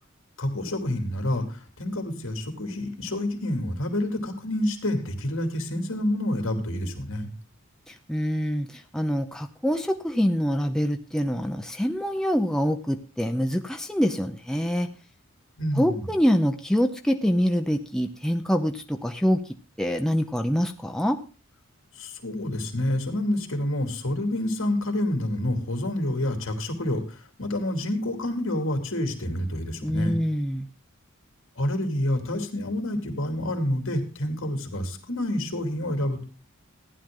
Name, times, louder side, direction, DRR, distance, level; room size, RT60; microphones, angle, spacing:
voice 1, 0.4-7.3 15.6-16.1 22.0-30.2 31.6-36.2, left 1 dB, 75° left, 4 dB, 2.7 m, -28 dB
voice 2, 7.9-14.9 15.8-19.4 19.8-21.2 29.8-30.7, equal, 5° left, 4 dB, 0.6 m, -25 dB
15.0 x 10.5 x 3.7 m, 0.33 s
head